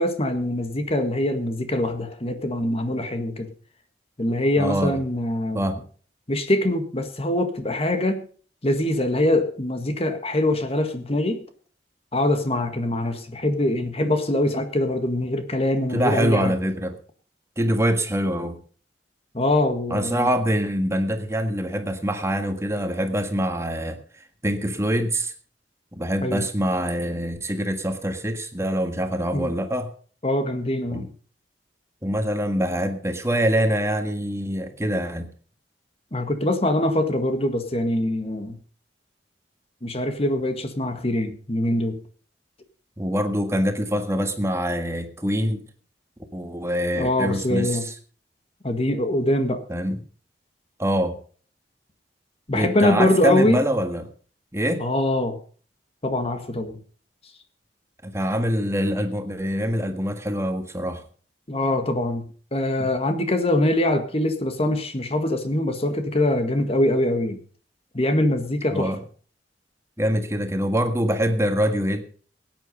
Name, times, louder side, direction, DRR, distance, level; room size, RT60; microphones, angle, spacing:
voice 1, 0.0-3.5 4.2-5.8 6.3-8.3 8.6-11.4 12.1-16.5 19.3-20.3 26.2-26.4 29.3-29.5 30.2-31.1 36.1-38.6 39.8-42.0 46.9-47.8 48.6-49.6 52.5-53.6 54.8-55.4 56.0-56.8 61.5-62.2 62.5-67.4 67.9-68.9, left 1 dB, 35° left, 8 dB, 1.8 m, -23 dB
voice 2, 4.6-5.0 5.5-5.8 15.9-17.0 17.6-18.6 19.9-24.0 24.4-25.3 25.9-29.9 30.9-31.1 32.0-35.3 43.0-45.6 46.3-47.9 49.7-50.0 50.8-51.2 52.5-54.1 54.5-54.9 58.0-61.0 68.7-69.0 70.0-72.0, equal, 15° right, 7 dB, 1.6 m, -24 dB
17.0 x 9.4 x 5.4 m, 0.43 s
head